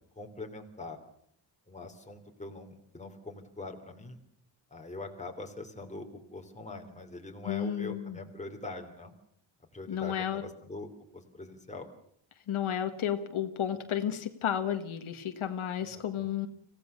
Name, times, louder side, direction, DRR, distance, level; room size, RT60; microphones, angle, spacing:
voice 1, 0.2-1.0 1.7-4.2 4.7-9.1 9.7-10.9 11.1-11.9 15.9-16.3, left 2 dB, 15° left, 3 dB, 3.1 m, -43 dB
voice 2, 7.4-8.2 9.9-10.4 12.5-16.5, left 9 dB, 90° left, 6 dB, 1.8 m, -32 dB
26.0 x 16.5 x 6.9 m, 0.66 s
wide cardioid pair, 130°, 48 cm